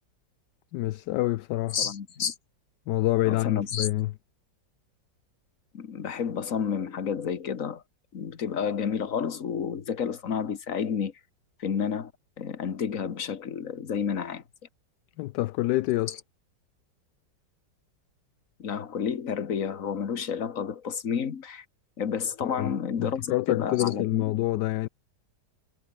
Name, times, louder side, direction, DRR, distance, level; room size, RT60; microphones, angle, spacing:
voice 1, 0.7-1.8 2.9-4.1 15.2-16.2 22.4-22.7 23.0-24.9, left 17 dB, 75° left, 1.1 m, -27 dB
voice 2, 1.7-2.3 3.2-3.9 5.7-7.8 8.1-11.1 11.6-12.1 12.4-14.4 16.1-16.2 18.6-21.7 22.0-24.4, left 7 dB, 45° left, 1.8 m, -30 dB
omnidirectional pair, 2.0 m